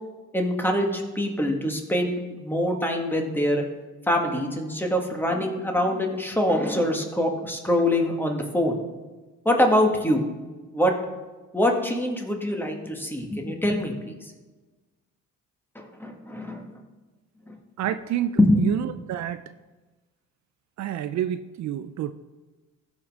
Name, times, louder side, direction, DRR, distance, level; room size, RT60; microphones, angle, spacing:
voice 1, 0.3-3.6 4.1-8.8 9.4-10.2 10.7-10.9 11.5-14.1 15.7-16.6 17.5-17.6 18.4-18.6, left 1 dB, 5° left, 2 dB, 1.7 m, -24 dB
voice 2, 17.8-19.5 20.8-22.1, right 10 dB, 65° right, 12 dB, 0.4 m, -29 dB
14.5 x 5.2 x 3.6 m, 1.2 s
cardioid pair, 90°, 30 cm